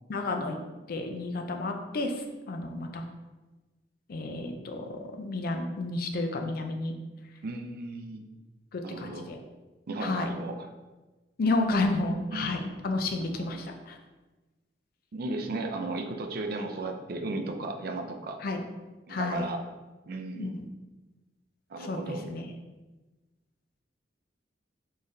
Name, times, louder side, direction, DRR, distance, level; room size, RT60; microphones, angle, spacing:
voice 1, 0.1-0.6 0.9-2.1 2.5-3.0 4.1-6.9 8.7-9.4 10.0-10.3 11.4-14.0 18.4-18.6 19.1-19.4 20.4-20.7 21.8-22.5, left 2 dB, 55° left, 4 dB, 0.4 m, -31 dB
voice 2, 7.4-8.2 8.8-9.3 9.9-10.7 12.3-12.7 13.2-13.6 15.1-18.4 19.1-19.6 20.1-20.6 21.7-22.2, right 2 dB, 55° right, 4 dB, 0.4 m, -35 dB
3.8 x 3.2 x 2.6 m, 1.2 s
head